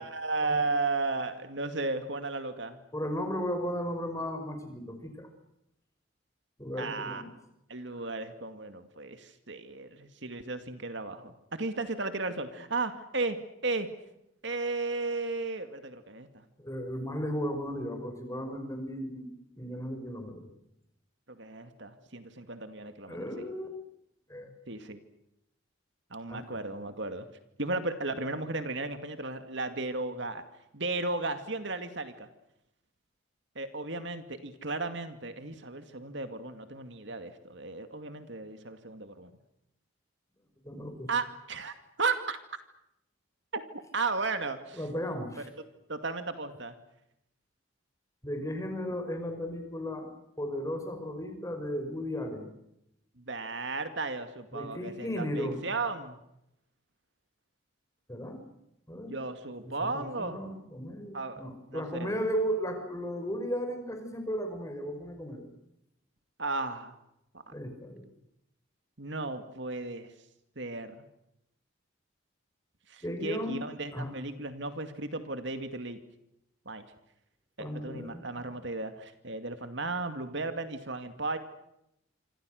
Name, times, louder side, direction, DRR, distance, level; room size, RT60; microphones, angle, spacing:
voice 1, 0.0-2.8 6.8-7.2 7.7-13.9 14.4-16.4 21.3-23.2 24.7-25.0 26.1-27.3 27.6-30.4 30.7-32.3 33.6-39.3 41.1-42.4 43.5-44.8 45.9-46.8 53.3-56.2 59.1-60.4 61.1-61.5 61.7-62.1 66.4-66.9 69.0-70.1 70.6-71.0 72.9-76.0 76.7-76.8 77.6-81.4, right 3 dB, 60° right, 9 dB, 2.3 m, -35 dB
voice 2, 2.9-5.3 6.6-7.3 16.6-20.5 23.1-23.7 24.3-24.5 26.3-26.4 40.6-41.1 44.7-45.5 48.2-50.1 50.4-52.5 54.5-55.6 58.1-58.4 58.9-59.2 59.6-65.5 67.5-68.0 73.0-73.6 73.9-74.1 77.6-78.5, equal, 15° left, 6 dB, 5.4 m, -35 dB
27.0 x 26.0 x 6.6 m, 0.81 s
head